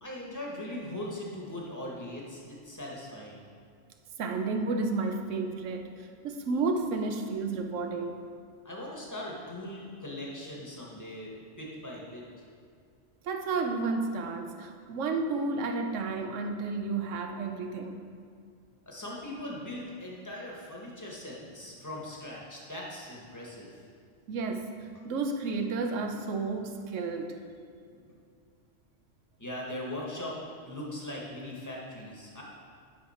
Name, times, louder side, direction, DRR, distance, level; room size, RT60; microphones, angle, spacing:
voice 1, 0.0-3.4 8.6-12.4 18.9-23.8 28.0-28.1 29.4-30.3 30.6-32.4, left 1 dB, 15° left, -3 dB, 1.4 m, -40 dB
voice 2, 4.2-5.9 6.2-8.2 13.2-18.0 24.3-27.4, right 3 dB, 75° right, 5 dB, 1.0 m, -31 dB
9.8 x 5.6 x 4.3 m, 2.3 s
omnidirectional pair, 1.3 m